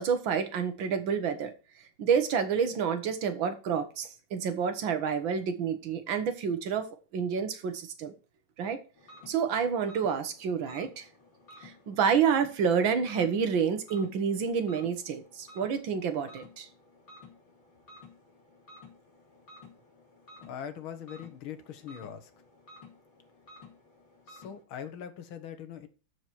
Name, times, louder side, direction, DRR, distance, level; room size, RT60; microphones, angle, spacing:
voice 1, 0.0-1.5 2.0-6.9 7.1-8.1 8.6-8.8 9.3-11.1 11.6-16.7, right 6 dB, 70° right, 1.9 m, -29 dB
sound 1, 9.0-24.6, left 2 dB, 65° left, 4.1 m, -54 dB
voice 2, 20.5-22.3 24.3-25.9, left 8 dB, 85° left, 2.0 m, -41 dB
13.0 x 4.8 x 4.5 m
omnidirectional pair, 2.2 m